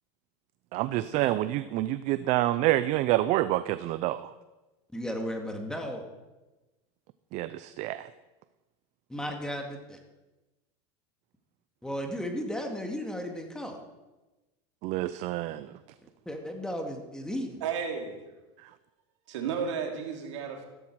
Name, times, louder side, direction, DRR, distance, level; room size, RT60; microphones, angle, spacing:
voice 1, 0.7-4.3 7.3-8.1 14.8-15.7 18.6-18.7, right 15 dB, 50° right, 14 dB, 0.6 m, -27 dB
voice 2, 4.9-6.0 9.1-10.0 11.8-13.8 16.3-17.6, equal, 5° left, 3 dB, 2.1 m, -35 dB
voice 3, 17.6-18.2 19.3-20.7, right 6 dB, 85° right, 3 dB, 2.9 m, -33 dB
14.5 x 13.5 x 4.8 m, 1.1 s
supercardioid pair, 130°, 15 cm